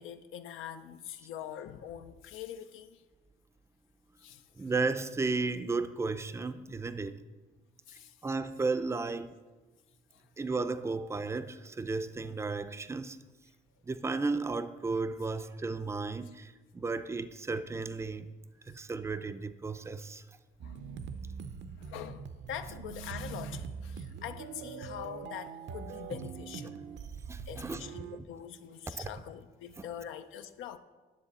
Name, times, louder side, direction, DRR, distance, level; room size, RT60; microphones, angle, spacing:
voice 1, 0.0-3.0 4.2-4.7 7.9-8.2 10.1-10.3 20.6-20.8 21.8-26.8 27.5-30.8, left 9 dB, 85° left, 0.6 m, -44 dB
voice 2, 4.6-7.2 8.2-9.3 10.4-13.2 13.8-18.3 18.7-20.2 27.3-27.8 29.0-29.1 29.8-29.9, right 3 dB, 15° right, 0.5 m, -34 dB
sound 1, 20.6-28.2, right 6 dB, 65° right, 0.6 m, -43 dB
10.5 x 6.6 x 4.2 m
cardioid pair, 90°, 20 cm